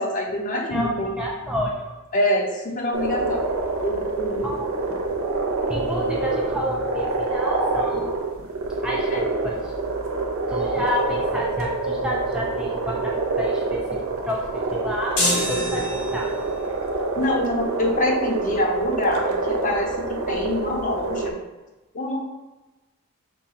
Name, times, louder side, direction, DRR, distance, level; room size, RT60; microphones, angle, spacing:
voice 1, 0.0-1.3 2.1-3.5 3.8-4.5 6.3-6.4 9.1-9.2 17.2-19.2 19.5-21.4 21.9-22.2, left 1 dB, 35° left, 0 dB, 0.6 m, -25 dB
voice 2, 0.7-2.0 4.4-4.7 5.7-8.1 8.8-9.7 10.5-16.3, equal, 5° right, -3 dB, 0.3 m, -30 dB
sound 1, 2.9-21.3, right 3 dB, 60° right, 0.6 m, -26 dB
sound 2, 15.2-16.5, left 1 dB, 85° left, 1.1 m, -25 dB
5.6 x 2.2 x 3.7 m, 1.1 s
head